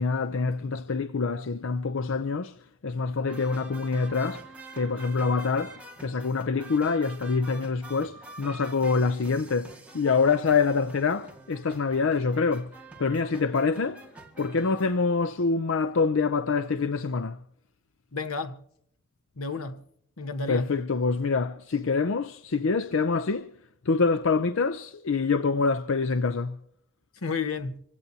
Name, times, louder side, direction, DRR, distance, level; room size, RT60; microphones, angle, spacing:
voice 1, 0.0-2.6 2.8-4.5 4.7-12.7 13.0-14.0 14.4-17.4 20.5-23.5 23.9-26.6, left 4 dB, 65° left, 0.5 m, -26 dB
sound 1, 3.2-14.9, right 3 dB, 5° right, 1.9 m, -47 dB
voice 2, 18.1-18.6 19.4-19.8 20.2-20.7 27.2-27.8, left 4 dB, 85° left, 1.2 m, -31 dB
25.0 x 16.5 x 2.8 m
head